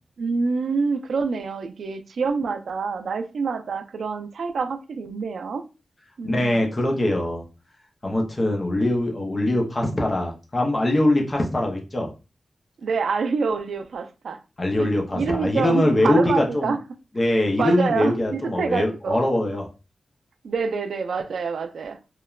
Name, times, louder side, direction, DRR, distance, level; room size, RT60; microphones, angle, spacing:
voice 1, 0.2-5.6 6.2-6.7 12.8-14.4 14.8-16.8 17.6-19.2 20.4-22.0, right 5 dB, 80° right, 0.3 m, -26 dB
voice 2, 6.2-7.4 8.0-12.1 14.6-16.7 17.2-19.7, left 1 dB, 25° left, 0.5 m, -22 dB
3.0 x 2.1 x 2.3 m
wide cardioid pair, 165°, 0 cm